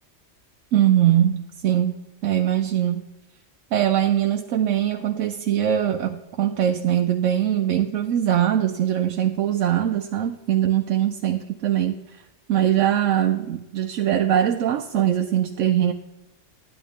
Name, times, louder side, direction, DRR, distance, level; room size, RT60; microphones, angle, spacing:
voice 1, 0.7-2.0 2.2-3.0 3.7-12.2 12.5-15.9, right 11 dB, 90° right, 5 dB, 1.0 m, -22 dB
11.0 x 10.5 x 3.5 m, 0.96 s
omnidirectional pair, 1.3 m